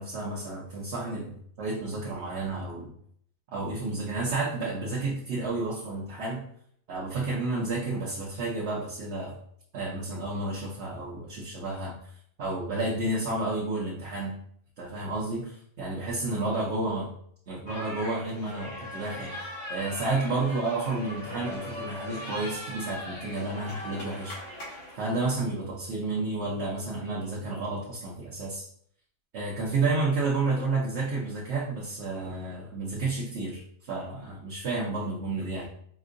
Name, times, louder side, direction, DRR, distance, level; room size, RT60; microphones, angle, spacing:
voice 1, 0.0-2.9 3.5-6.5 6.9-9.3 9.7-11.9 12.4-14.4 14.8-17.1 17.5-24.4 24.9-28.7 29.3-35.6, right 3 dB, 55° right, -4 dB, 1.0 m, -31 dB
sound 1, 17.7-25.0, left 1 dB, 75° left, 1.8 m, -39 dB
5.2 x 2.6 x 2.5 m, 0.65 s
omnidirectional pair, 1.4 m